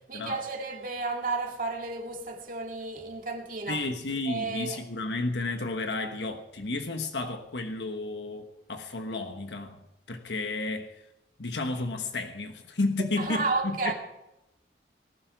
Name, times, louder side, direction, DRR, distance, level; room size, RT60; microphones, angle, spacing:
voice 1, 0.1-3.9 4.3-4.8 13.2-13.9, right 3 dB, 50° right, 2.2 m, -32 dB
voice 2, 3.7-9.8 10.1-11.0 11.4-13.9, left 2 dB, 80° left, 1.2 m, -32 dB
19.5 x 12.0 x 4.8 m
head